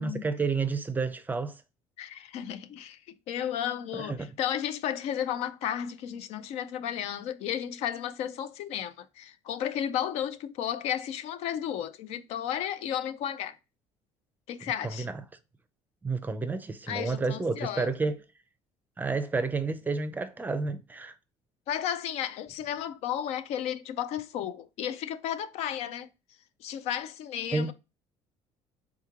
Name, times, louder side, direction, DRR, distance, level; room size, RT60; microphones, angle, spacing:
voice 1, 0.0-1.6 3.9-4.3 14.6-15.1 16.0-18.2 19.0-21.1 27.5-27.7, right 4 dB, 15° right, 0.5 m, -30 dB
voice 2, 2.0-3.0 3.3-13.6 14.5-15.1 16.9-17.9 21.7-26.1 26.6-27.7, left 10 dB, 70° left, 0.4 m, -33 dB
3.7 x 3.0 x 3.6 m
cardioid pair, 115°, 11 cm